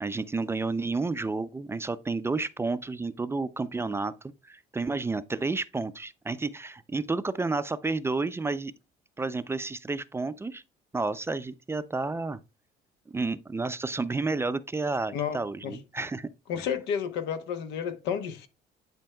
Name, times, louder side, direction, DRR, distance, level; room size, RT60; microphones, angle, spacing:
voice 1, 0.0-8.7 9.2-10.6 10.9-12.4 13.1-16.3 16.5-16.7, right 3 dB, 15° right, 0.4 m, -31 dB
voice 2, 16.5-18.5, left 8 dB, 90° left, 1.0 m, -31 dB
10.5 x 4.5 x 2.2 m
cardioid pair, 110°, 17 cm